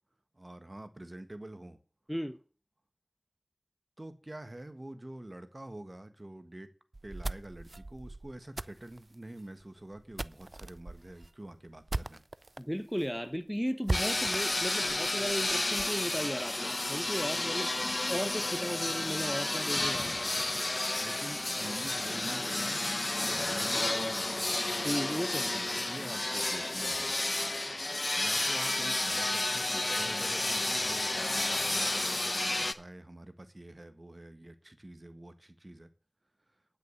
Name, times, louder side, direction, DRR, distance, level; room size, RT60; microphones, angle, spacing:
voice 1, 0.3-1.8 4.0-6.7 7.0-12.2 18.0-18.1 20.1-20.6 21.0-22.8 23.2-24.4 25.4-27.2 28.1-35.9, right 1 dB, 45° right, 1.5 m, -46 dB
sound 1, 6.9-12.6 13.0-13.1 13.3-13.4 13.9-16.0, right 2 dB, 60° right, 0.4 m, -39 dB
voice 2, 12.6-17.7 18.1-20.1 24.8-25.5, equal, ahead, 0.7 m, -35 dB
sound 2, 13.9-32.7, left 2 dB, 55° left, 0.8 m, -31 dB
10.5 x 6.6 x 8.1 m
wide cardioid pair, 40°, 0 cm